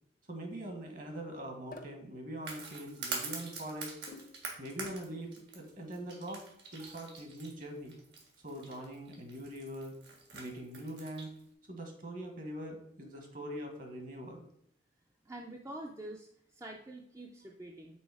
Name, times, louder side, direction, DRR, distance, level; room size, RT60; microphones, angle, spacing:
voice 1, 0.3-3.9 4.6-6.4 6.7-8.0 8.4-10.0 10.3-11.3 11.7-14.5, right 1 dB, 45° right, 3 dB, 1.3 m, -43 dB
sound 1, 1.7-2.0 4.1-4.5, left 3 dB, 45° left, 0.6 m, -49 dB
sound 2, 2.4-11.4, right 4 dB, 70° right, 1.6 m, -44 dB
voice 2, 15.3-18.0, right 1 dB, 15° right, 1 dB, 0.4 m, -46 dB
6.2 x 4.0 x 4.8 m, 0.69 s
head